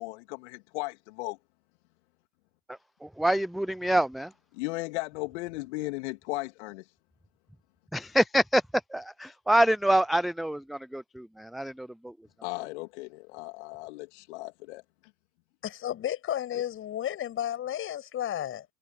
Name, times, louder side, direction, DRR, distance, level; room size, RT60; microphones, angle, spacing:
voice 1, 0.0-1.4 4.5-6.9 12.4-14.8 16.5-16.6, left 23 dB, 50° left, 2.7 m, -36 dB
voice 2, 3.0-4.3 7.9-8.6 8.9-12.1, right 1 dB, ahead, 0.4 m, -26 dB
voice 3, 15.6-18.7, left 11 dB, 30° left, 7.6 m, -32 dB
figure-of-eight pair, 100°, 44 cm